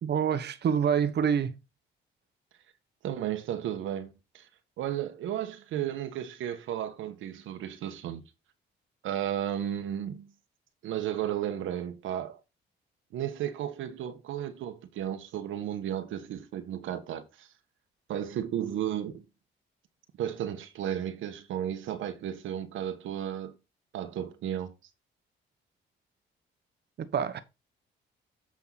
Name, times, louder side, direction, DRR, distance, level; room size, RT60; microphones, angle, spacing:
voice 1, 0.0-1.5 27.0-27.4, right 7 dB, 55° right, 1.2 m, -26 dB
voice 2, 3.0-4.5 4.8-8.2 9.0-10.3 10.8-12.4 13.1-17.5 18.1-19.2 20.2-23.6 23.9-24.7, right 10 dB, 80° right, 1.4 m, -34 dB
8.8 x 5.9 x 4.0 m
cardioid pair, 90°, 20 cm